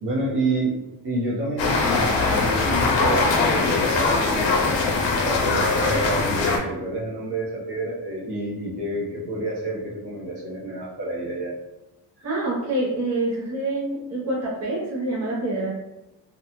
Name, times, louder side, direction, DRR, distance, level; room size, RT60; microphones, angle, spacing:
voice 1, 0.0-4.8 5.1-11.6 12.2-12.3, right 1 dB, 65° right, -5 dB, 1.0 m, -29 dB
sound 1, 1.6-6.6, left 3 dB, 85° left, 0.7 m, -21 dB
voice 2, 12.2-15.7, right 2 dB, 35° right, -5 dB, 0.7 m, -26 dB
2.7 x 2.2 x 2.9 m, 0.96 s
wide cardioid pair, 150°, 43 cm